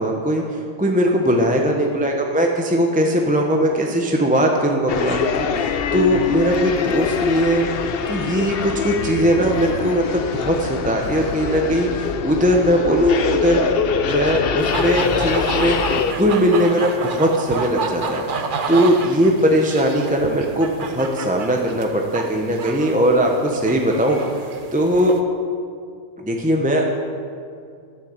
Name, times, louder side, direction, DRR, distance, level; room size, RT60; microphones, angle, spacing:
voice 1, 0.0-7.7 8.1-13.7 14.0-15.8 16.1-24.2 24.7-25.1 26.2-26.9, equal, 5° right, 1 dB, 0.9 m, -19 dB
sound 1, 4.9-16.1, left 6 dB, 55° left, 0.8 m, -23 dB
sound 2, 14.6-25.2, right 4 dB, 45° right, 0.8 m, -30 dB
13.5 x 6.9 x 8.2 m, 2.4 s
omnidirectional pair, 1.3 m